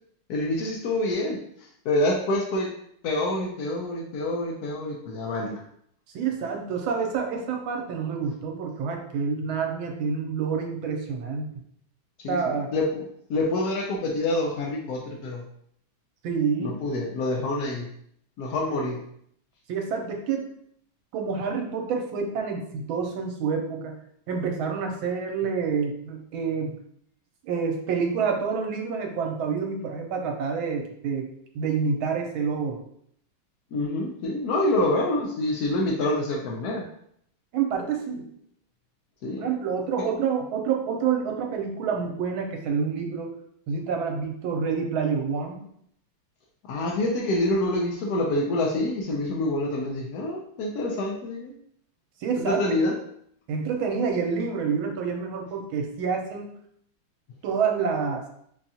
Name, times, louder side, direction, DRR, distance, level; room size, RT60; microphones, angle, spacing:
voice 1, 0.3-1.4 1.8-2.7 3.0-5.6 12.2-13.0 13.3-15.4 16.6-17.9 18.4-19.0 33.7-36.9 39.2-39.5 40.0-40.1 46.7-51.5 52.4-52.9, left 1 dB, 80° left, -1 dB, 0.8 m, -27 dB
voice 2, 6.1-11.5 12.3-12.7 16.2-16.8 19.7-20.5 21.1-23.9 24.3-26.8 27.4-31.3 31.5-32.8 37.5-38.2 39.4-43.3 43.7-45.6 52.2-52.6 53.5-56.5 57.4-58.3, right 6 dB, 75° right, 2 dB, 1.4 m, -28 dB
5.8 x 2.3 x 2.7 m, 0.69 s
omnidirectional pair, 2.3 m